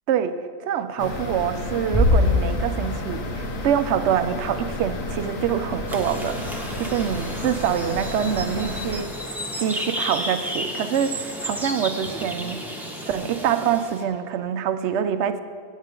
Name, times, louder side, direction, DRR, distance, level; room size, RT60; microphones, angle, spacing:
voice 1, 0.6-6.4 6.8-15.4, right 8 dB, 65° right, 10 dB, 0.8 m, -25 dB
sound 1, 1.0-9.0, left 2 dB, 90° left, 1.4 m, -32 dB
sound 2, 1.9-3.4, left 2 dB, 30° left, 1.7 m, -21 dB
sound 3, 5.9-14.0, equal, ahead, 0.9 m, -33 dB
15.5 x 8.2 x 3.7 m, 2.2 s
omnidirectional pair, 1.3 m